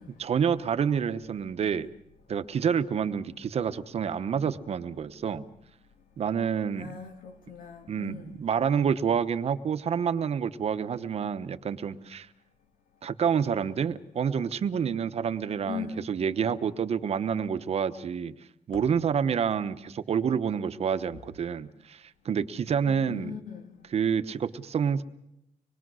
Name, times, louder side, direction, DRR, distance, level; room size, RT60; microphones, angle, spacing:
voice 1, 0.2-1.9 2.3-5.4 6.2-7.0 7.9-12.3 13.0-18.3 18.7-23.4 23.9-25.0, right 7 dB, 50° right, 0.9 m, -28 dB
voice 2, 6.7-8.4 15.7-16.1 18.7-18.9 22.9-23.7, left 7 dB, 85° left, 2.8 m, -40 dB
25.5 x 21.5 x 6.3 m
wide cardioid pair, 180°, 14 cm